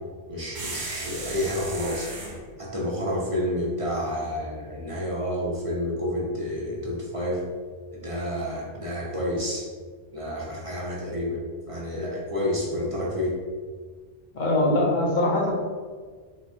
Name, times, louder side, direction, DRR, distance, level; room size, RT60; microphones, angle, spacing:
voice 1, 0.3-2.1 2.6-7.4 7.9-9.7 10.1-11.4 11.7-13.3, left 1 dB, 30° right, -5 dB, 0.8 m, -29 dB
sound 1, 0.5-2.4, right 3 dB, 65° right, 1.1 m, -35 dB
voice 2, 14.3-15.5, left 1 dB, 45° left, -1 dB, 0.8 m, -22 dB
4.2 x 2.4 x 4.2 m, 1.5 s
omnidirectional pair, 1.2 m